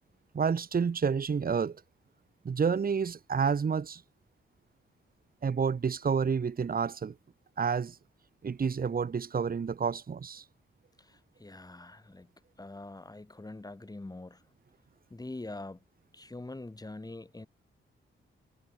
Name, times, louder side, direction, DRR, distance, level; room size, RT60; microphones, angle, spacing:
voice 1, 0.3-1.8 2.5-4.0 5.4-7.2 7.6-8.0 8.4-10.4, right 6 dB, 45° right, 1.6 m, -29 dB
voice 2, 11.1-12.3 12.6-14.4 15.1-15.8 16.1-17.5, left 2 dB, 20° left, 4.4 m, -44 dB
cardioid pair, 85°, 21 cm